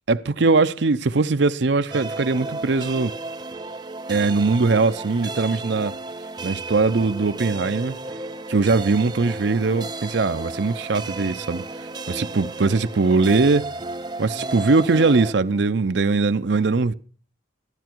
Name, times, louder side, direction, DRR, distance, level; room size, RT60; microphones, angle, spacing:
voice 1, 0.1-3.1 4.1-5.9 6.4-8.0 8.5-11.6 12.1-13.6 14.2-16.9, right 3 dB, 65° right, 0.6 m, -21 dB
sound 1, 1.9-15.3, right 2 dB, 20° right, 0.6 m, -33 dB
15.0 x 12.5 x 4.6 m
head